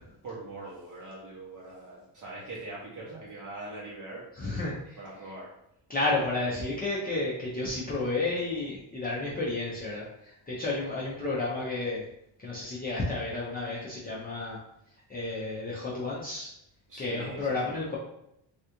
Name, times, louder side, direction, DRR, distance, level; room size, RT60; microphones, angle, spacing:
voice 1, 0.2-4.3 4.6-5.5 16.9-18.0, right 2 dB, 40° right, -5 dB, 0.7 m, -42 dB
voice 2, 4.4-5.0 5.9-12.1 12.4-14.6 15.1-16.5 17.0-18.0, left 2 dB, 20° left, -7 dB, 0.5 m, -31 dB
3.4 x 2.4 x 2.8 m, 0.79 s
cardioid pair, 120°, 49 cm